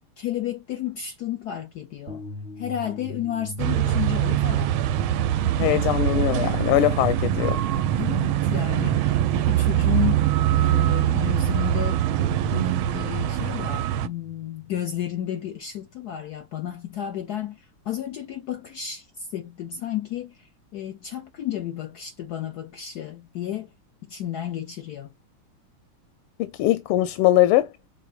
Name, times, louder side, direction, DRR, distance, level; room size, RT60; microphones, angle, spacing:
voice 1, 0.2-2.2 2.6-4.7 8.0-10.3 10.6-23.7 24.1-25.1, left 11 dB, 70° left, 1.0 m, -32 dB
sound 1, 2.1-15.2, left 2 dB, 40° right, 1.2 m, -39 dB
sound 2, 3.6-14.1, right 12 dB, 80° right, 1.3 m, -23 dB
voice 2, 5.6-7.6 26.4-27.7, left 14 dB, 90° left, 1.5 m, -21 dB
6.0 x 3.7 x 2.3 m
omnidirectional pair, 2.3 m